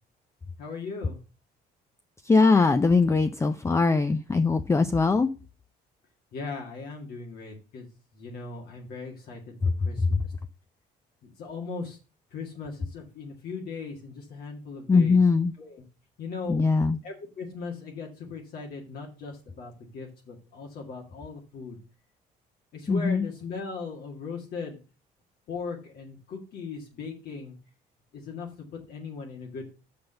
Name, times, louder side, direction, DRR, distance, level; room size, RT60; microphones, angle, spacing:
voice 1, 0.6-1.2 6.3-7.9 8.2-10.2 11.2-12.0 12.3-15.2 15.6-15.8 16.2-16.6 17.0-21.8 22.7-24.8 25.5-27.6 28.1-29.6, left 4 dB, 65° left, 0 dB, 2.1 m, -38 dB
voice 2, 2.2-5.3 10.0-10.1 14.9-15.5 16.5-17.0 22.9-23.3, left 4 dB, 15° left, 10 dB, 0.5 m, -21 dB
6.1 x 5.2 x 6.7 m, 0.32 s
cardioid pair, 110°, 17 cm